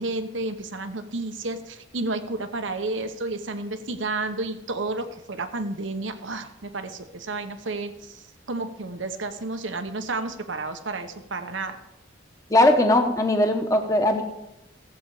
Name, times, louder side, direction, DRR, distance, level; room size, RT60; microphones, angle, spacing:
voice 1, 0.0-11.8, right 2 dB, 80° right, 9 dB, 1.0 m, -31 dB
voice 2, 12.5-14.2, left 1 dB, 15° left, 4 dB, 1.2 m, -19 dB
15.5 x 8.1 x 4.8 m, 0.89 s
head